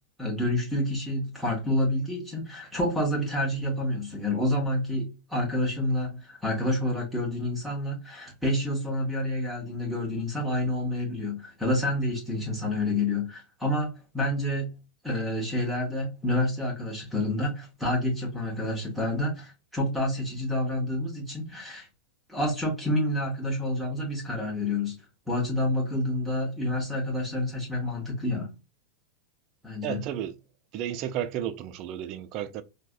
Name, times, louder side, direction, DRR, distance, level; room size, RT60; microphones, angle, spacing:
voice 1, 0.2-14.7 15.0-21.9 22.3-25.0 25.3-28.5 29.6-30.0, left 1 dB, ahead, 1.0 m, -28 dB
voice 2, 29.8-30.3 30.7-32.6, right 10 dB, 40° right, 0.4 m, -32 dB
4.6 x 2.1 x 2.4 m
figure-of-eight pair, 90°, 0 cm